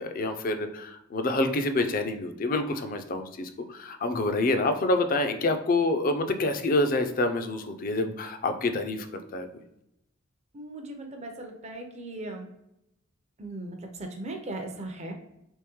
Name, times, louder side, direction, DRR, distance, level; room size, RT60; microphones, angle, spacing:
voice 1, 0.0-9.5, left 2 dB, 40° left, 7 dB, 0.4 m, -27 dB
voice 2, 10.5-12.5 13.4-15.1, right 2 dB, 30° right, 3 dB, 0.5 m, -38 dB
3.6 x 3.0 x 2.9 m, 0.82 s
head